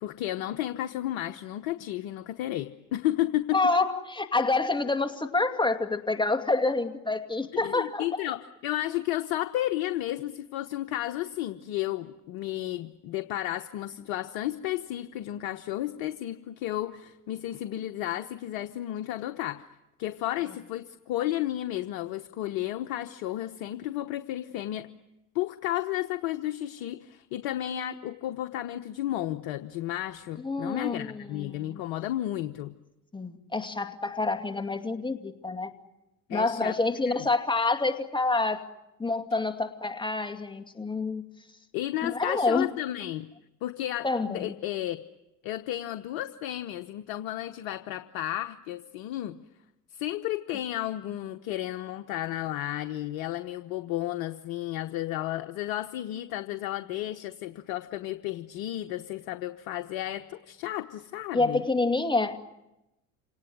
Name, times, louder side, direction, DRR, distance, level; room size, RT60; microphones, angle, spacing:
voice 1, 0.0-3.6 7.6-19.7 20.0-24.9 25.3-32.7 36.3-36.8 37.0-37.3 41.7-43.3 43.6-45.0 45.4-49.4 49.9-61.6, left 14 dB, 65° left, 8 dB, 1.1 m, -32 dB
voice 2, 3.5-8.0 30.4-31.8 33.1-35.7 36.3-38.6 39.0-41.2 42.0-42.7 44.0-44.5 61.3-62.4, left 3 dB, 10° left, 4 dB, 2.4 m, -27 dB
27.5 x 18.5 x 9.6 m, 0.95 s
hypercardioid pair, 65°, 41 cm